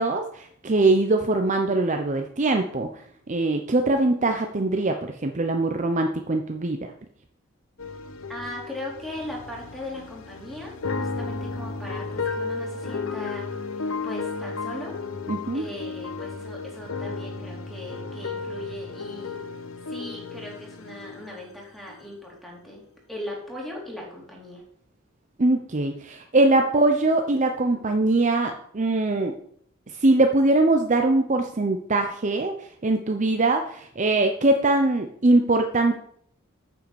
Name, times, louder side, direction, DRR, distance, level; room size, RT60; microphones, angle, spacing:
voice 1, 0.0-2.9 3.3-6.8 15.3-15.7 25.4-29.3 30.0-32.5 32.8-36.0, right 2 dB, 35° right, 5 dB, 0.7 m, -22 dB
sound 1, 7.8-21.6 21.9-22.1, left 4 dB, 85° left, 0.9 m, -34 dB
voice 2, 8.3-13.5 14.0-14.9 15.5-19.4 19.9-22.8 23.1-24.6, left 1 dB, ahead, -3 dB, 3.1 m, -38 dB
9.1 x 5.6 x 7.0 m, 0.65 s
head